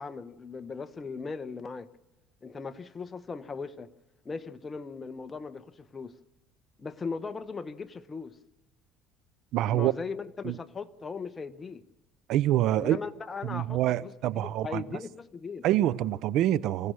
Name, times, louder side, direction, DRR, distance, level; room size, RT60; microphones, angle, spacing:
voice 1, 0.0-1.9 2.4-3.9 4.2-6.1 6.8-8.4 9.7-11.8 12.8-15.7, left 4 dB, 25° left, 1.0 m, -38 dB
voice 2, 9.5-9.9 10.4-10.6 12.3-13.0 13.4-14.8 15.6-16.9, right 13 dB, 65° right, 0.7 m, -26 dB
26.5 x 15.5 x 6.5 m
cardioid pair, 110°, 0 cm